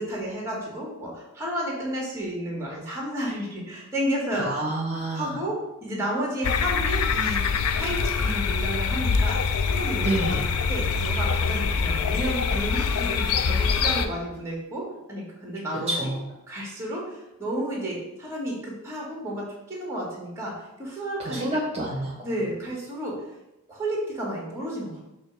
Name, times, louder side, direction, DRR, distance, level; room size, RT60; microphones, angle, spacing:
voice 1, 0.0-4.6 5.1-9.4 9.7-10.0 10.3-10.4 10.7-16.1 16.5-20.5 20.8-21.4 22.2-23.2 23.7-25.0, right 1 dB, 15° right, -3 dB, 1.8 m, -31 dB
voice 2, 4.4-5.4 10.0-10.4 15.7-16.2 21.2-22.1, right 1 dB, 30° right, -5 dB, 1.3 m, -28 dB
sound 1, 6.4-14.1, left 5 dB, 75° left, 0.5 m, -24 dB
6.6 x 3.0 x 4.7 m, 0.93 s
head